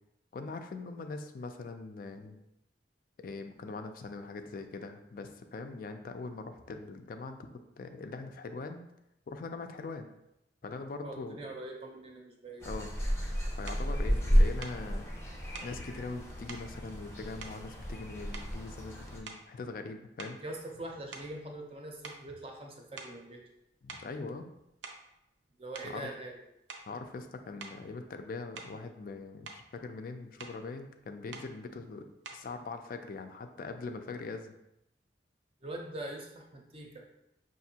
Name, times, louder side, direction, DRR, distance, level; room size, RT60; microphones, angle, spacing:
voice 1, 0.3-2.4 3.2-7.4 7.8-8.8 9.3-10.1 10.6-11.4 12.7-12.9 13.6-15.1 15.6-20.4 23.8-24.5 25.8-26.0 26.9-32.1 32.3-34.5, left 3 dB, 50° left, 7 dB, 0.3 m, -42 dB
voice 2, 11.0-12.7 20.4-23.4 25.6-26.4 35.6-37.0, right 1 dB, 30° right, 1 dB, 0.6 m, -43 dB
sound 1, 12.6-19.2, equal, 15° left, 0.7 m, -31 dB
sound 2, 13.7-13.9 14.6-14.8 15.5-15.8 16.5-16.7 17.4-18.0 18.3-18.7 19.2-19.6 20.2-21.8 22.0-22.3 23.0-23.2 23.9-24.1 24.6-25.1 25.7-26.0 26.7-26.9 27.6-27.8 28.6-28.8 29.2-29.7 30.4-30.6 31.3-31.5 32.2-32.5, right 4 dB, 80° right, 0.5 m, -47 dB
5.8 x 2.6 x 2.8 m, 0.84 s
head